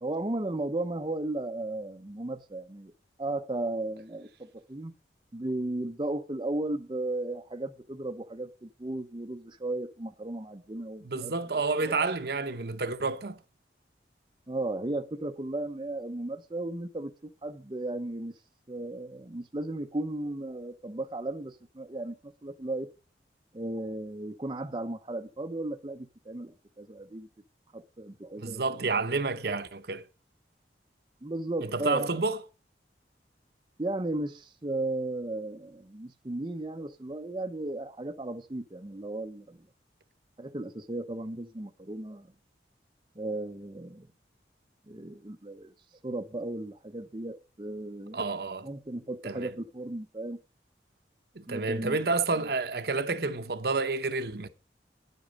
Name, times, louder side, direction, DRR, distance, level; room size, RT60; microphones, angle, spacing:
voice 1, 0.0-2.9 3.2-4.9 5.3-11.3 11.8-12.1 14.5-18.3 18.7-22.9 23.5-27.3 27.7-28.8 31.2-32.1 33.8-39.7 40.4-42.3 43.1-44.1 44.9-45.7 46.0-48.2 48.6-50.4 51.5-52.0 52.3-52.5, right 2 dB, 25° right, 0.6 m, -35 dB
voice 2, 11.0-13.4 28.4-30.0 31.6-32.4 48.1-48.7 49.2-49.5 51.3-54.5, right 3 dB, 60° right, 0.8 m, -30 dB
10.0 x 8.2 x 5.2 m
head